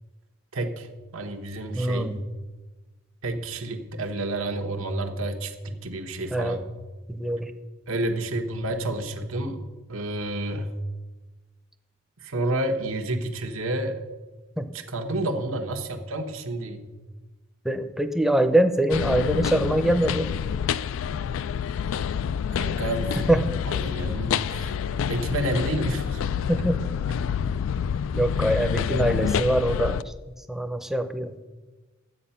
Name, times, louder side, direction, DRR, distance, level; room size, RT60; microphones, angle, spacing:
voice 1, 0.5-0.9 1.1-2.2 3.2-6.6 7.9-9.6 9.9-10.7 12.2-14.0 14.7-16.9 22.6-23.3 23.6-24.7 25.0-26.2, right 1 dB, 85° right, 5 dB, 1.2 m, -30 dB
voice 2, 1.8-2.2 6.3-6.6 7.1-7.5 14.6-14.7 17.6-20.3 23.3-23.5 26.5-26.8 28.1-30.0 30.5-31.3, right 1 dB, ahead, 8 dB, 0.6 m, -23 dB
sound 1, 18.9-30.0, left 7 dB, 75° left, 0.3 m, -27 dB
11.0 x 8.2 x 5.7 m, 1.2 s
head